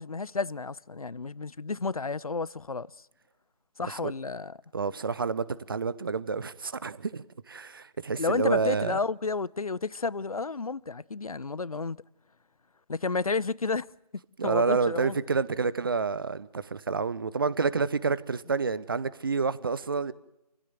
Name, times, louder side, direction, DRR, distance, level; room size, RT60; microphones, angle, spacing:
voice 1, 0.0-2.9 3.8-4.6 8.2-12.0 12.9-13.9 14.4-15.2, left 4 dB, 60° left, 0.7 m, -31 dB
voice 2, 3.8-4.1 4.7-9.0 14.4-20.1, right 4 dB, 35° right, 0.9 m, -29 dB
28.0 x 16.5 x 7.7 m
figure-of-eight pair, 160°, 21 cm